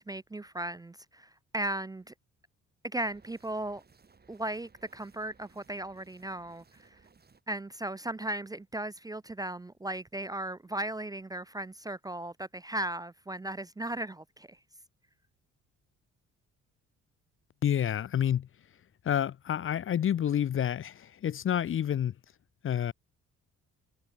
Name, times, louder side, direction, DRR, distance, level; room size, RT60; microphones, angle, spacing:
voice 1, 0.0-2.1 2.8-3.8 4.3-7.0 7.5-14.6, right 1 dB, 10° right, 0.5 m, -36 dB
sound 1, 3.0-7.4, right 5 dB, 30° right, 6.0 m, -62 dB
voice 2, 17.6-18.5 19.0-22.1 22.6-22.9, left 10 dB, 45° left, 0.6 m, -29 dB
cardioid pair, 90°, 30 cm